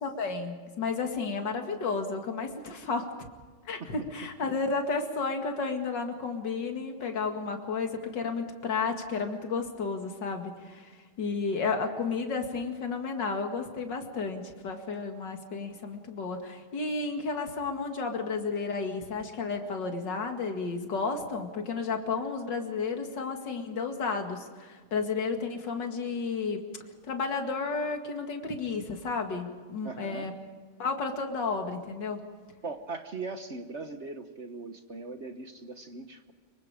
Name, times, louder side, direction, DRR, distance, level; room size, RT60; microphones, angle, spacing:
voice 1, 0.0-3.1 3.6-26.6 27.1-30.3 30.8-32.2, left 4 dB, 55° left, 4 dB, 2.7 m, -32 dB
voice 2, 29.8-30.3 32.6-36.3, right 3 dB, 40° right, 7 dB, 1.1 m, -40 dB
26.0 x 24.0 x 5.1 m, 1.5 s
omnidirectional pair, 2.4 m